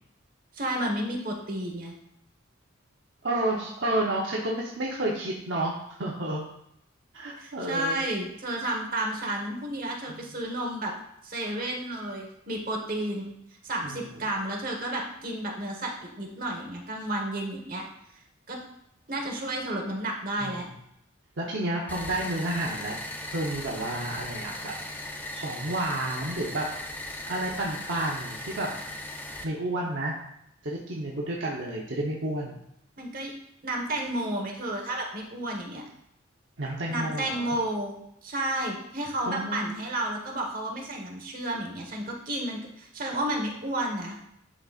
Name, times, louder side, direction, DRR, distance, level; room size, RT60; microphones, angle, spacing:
voice 1, 0.5-1.9 7.4-10.9 11.2-13.3 13.6-17.8 18.5-18.6 19.1-20.7 33.0-33.3 33.6-35.8 36.9-44.2, right 1 dB, 45° right, 0 dB, 1.3 m, -31 dB
voice 2, 3.2-5.7 6.0-6.4 7.1-8.0 13.8-14.0 20.4-20.6 21.4-23.0 23.3-24.7 25.3-26.7 27.3-28.7 29.4-30.1 30.6-32.6 36.6-37.5 39.3-39.7, right 1 dB, 65° right, -3 dB, 0.9 m, -30 dB
sound 1, 21.9-29.4, left 1 dB, 10° left, 0.4 m, -38 dB
10.5 x 4.0 x 2.5 m, 0.77 s
head